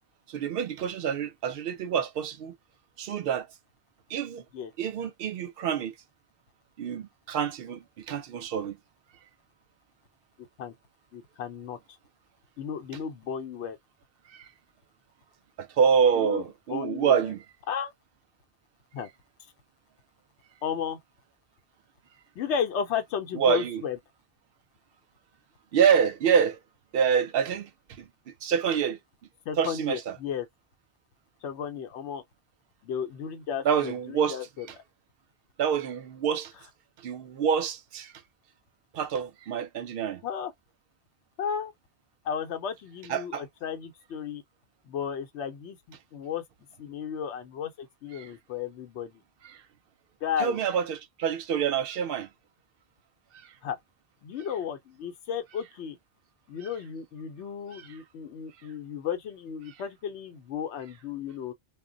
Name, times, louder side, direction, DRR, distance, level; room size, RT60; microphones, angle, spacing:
voice 1, 0.3-2.6 3.0-3.5 4.1-4.4 4.8-5.9 6.8-8.8 14.3-14.5 15.6-17.4 23.3-23.8 25.7-26.6 26.9-27.7 28.0-29.0 29.6-30.2 33.6-34.5 35.6-36.5 37.0-38.1 38.9-40.2 43.1-43.4 48.1-48.3 49.4-49.6 50.4-52.3 53.4-53.5 56.6-56.7 57.7-58.0 59.7-59.8, right 7 dB, 65° right, 0.7 m, -27 dB
voice 2, 11.1-11.8 12.6-13.8 16.1-16.4 16.7-17.3 17.7-17.9 18.9-19.1 20.6-21.0 22.4-24.0 29.5-30.5 31.4-32.2 32.8-34.7 40.2-40.5 41.4-41.7 42.2-44.4 44.9-46.4 46.8-49.1 50.2-50.6 53.6-53.8 54.2-56.0 56.5-61.5, left 8 dB, 80° left, 0.9 m, -34 dB
2.2 x 2.1 x 3.7 m
omnidirectional pair, 1.2 m